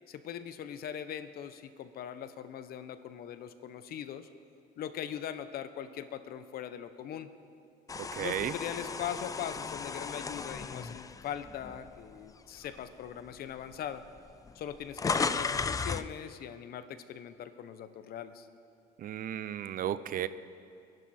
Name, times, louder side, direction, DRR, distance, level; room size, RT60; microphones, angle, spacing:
voice 1, 0.1-4.3 4.8-7.3 8.2-14.0 14.5-18.5, left 9 dB, 65° left, 11 dB, 1.0 m, -41 dB
sound 1, 7.9-12.1 12.6-12.8 13.7-13.8 14.0-16.1, left 4 dB, 20° left, 0.5 m, -35 dB
voice 2, 8.0-8.5 19.0-20.3, right 11 dB, 55° right, 15 dB, 0.6 m, -34 dB
27.0 x 11.5 x 4.3 m, 2.4 s
cardioid pair, 110°, 17 cm